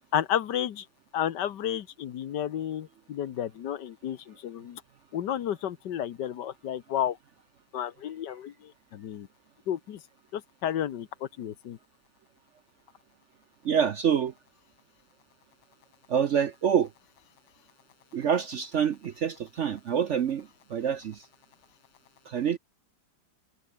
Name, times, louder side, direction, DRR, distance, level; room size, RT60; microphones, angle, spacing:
voice 1, 0.1-0.9 1.1-4.8 5.1-7.2 7.7-8.5 8.9-9.3 9.7-10.0 10.3-11.1 11.4-11.8, left 10 dB, 75° left, 1.7 m, -31 dB
voice 2, 13.6-14.3 16.1-16.9 18.1-21.3 22.3-22.6, right 8 dB, 60° right, 0.8 m, -26 dB
omnidirectional pair, 1.9 m